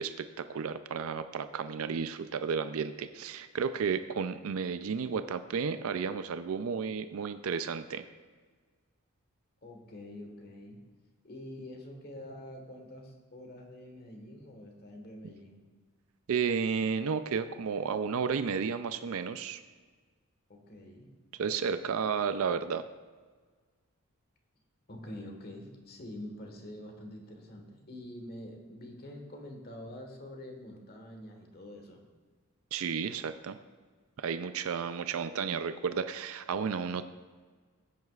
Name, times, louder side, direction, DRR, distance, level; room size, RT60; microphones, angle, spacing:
voice 1, 0.0-8.0 16.3-19.6 21.4-22.9 32.7-33.6 34.2-37.0, right 6 dB, 70° right, 11 dB, 0.4 m, -32 dB
voice 2, 9.6-10.8 11.2-15.6 20.5-21.1 24.9-32.0, left 1 dB, 45° left, 3 dB, 1.5 m, -46 dB
15.0 x 9.4 x 2.4 m, 1.5 s
head